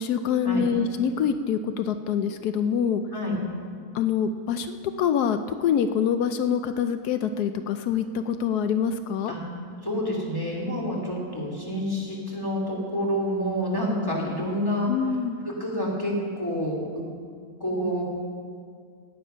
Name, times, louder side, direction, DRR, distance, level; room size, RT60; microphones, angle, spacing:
voice 1, 0.0-3.0 3.9-9.3 14.9-15.4, left 7 dB, 85° left, 9 dB, 1.2 m, -25 dB
voice 2, 9.8-14.9 15.4-17.0 17.6-18.0, equal, 15° left, -3 dB, 3.0 m, -28 dB
17.5 x 10.5 x 5.6 m, 2.1 s
omnidirectional pair, 1.6 m